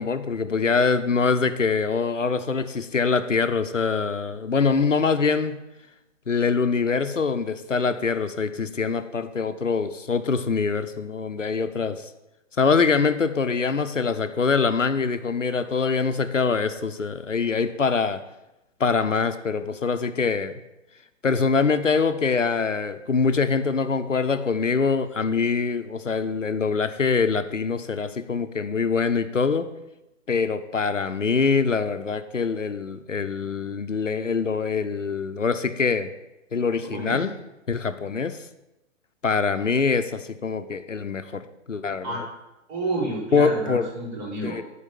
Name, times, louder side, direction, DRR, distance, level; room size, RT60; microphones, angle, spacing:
voice 1, 0.0-5.6 6.3-12.1 12.6-18.2 18.8-20.5 21.2-29.7 30.3-36.1 36.5-37.3 37.7-38.4 39.2-42.2 43.3-43.9 44.4-44.6, left 5 dB, 80° left, 10 dB, 0.8 m, -24 dB
voice 2, 36.8-37.2 42.0-42.2 42.7-44.6, right 2 dB, 35° right, -4 dB, 4.8 m, -30 dB
12.5 x 5.0 x 7.2 m, 0.96 s
figure-of-eight pair, 115°, 37 cm